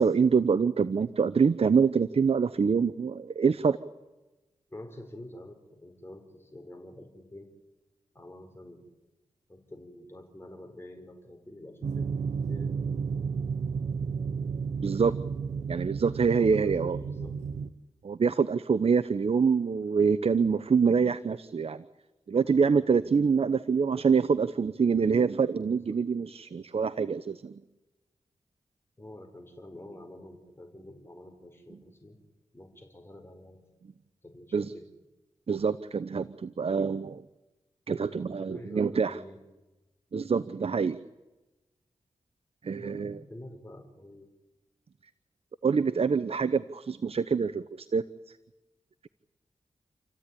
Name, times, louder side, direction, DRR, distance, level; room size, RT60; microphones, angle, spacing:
voice 1, 0.0-3.8 14.8-15.1 15.7-17.0 18.0-21.8 22.3-27.6 34.5-34.7 35.5-37.2 37.9-39.2 40.1-41.0 42.6-43.2 45.6-48.0, right 5 dB, 55° right, 14 dB, 0.8 m, -25 dB
voice 2, 4.7-7.5 8.1-8.8 9.5-12.2 12.5-12.7 16.3-17.4 22.8-23.0 25.7-26.0 29.0-32.2 32.5-33.6 34.2-34.9 38.1-39.4 42.8-44.3, left 1 dB, 20° left, 3 dB, 4.8 m, -47 dB
sound 1, 11.8-17.7, right 5 dB, 75° right, 1.1 m, -32 dB
28.5 x 15.0 x 9.9 m, 1.1 s
cardioid pair, 60°, 12 cm